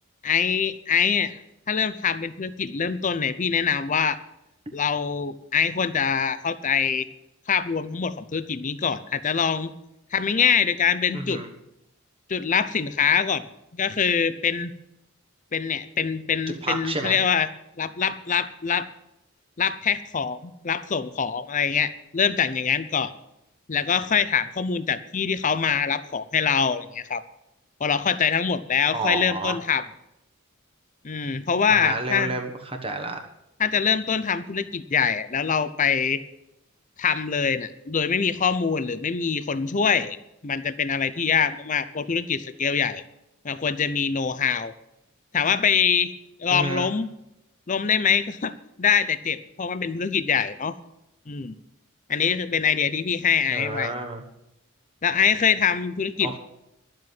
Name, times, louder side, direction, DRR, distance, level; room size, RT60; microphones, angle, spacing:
voice 1, 0.2-1.4 1.7-4.2 4.7-7.1 7.5-9.7 10.1-11.4 12.3-13.4 13.7-14.7 15.5-17.5 17.8-18.9 19.6-23.1 23.7-27.2 27.8-29.8 31.0-32.3 33.6-36.2 37.0-40.2 40.4-43.0 43.4-44.7 45.3-46.1 46.4-47.1 47.7-50.8 51.3-51.6 52.1-53.9 55.0-56.4, left 6 dB, 35° left, 13 dB, 0.6 m, -24 dB
voice 2, 11.1-11.5 16.6-17.2 28.9-29.5 31.7-33.2 46.5-46.9 53.5-54.2 56.2-56.4, right 2 dB, 25° right, 4 dB, 1.2 m, -30 dB
11.5 x 7.6 x 9.4 m, 0.86 s
head